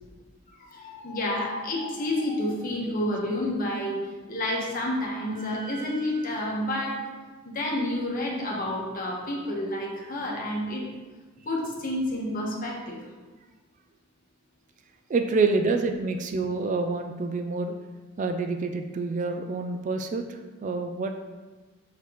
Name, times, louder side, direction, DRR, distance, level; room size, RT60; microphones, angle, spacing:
voice 1, 0.5-4.0 4.3-7.0 7.4-10.8 11.4-13.0, left 1 dB, 40° left, -2 dB, 1.2 m, -29 dB
voice 2, 15.1-17.7 18.2-21.1, right 3 dB, 35° right, 6 dB, 0.3 m, -27 dB
5.8 x 5.7 x 3.0 m, 1.3 s
head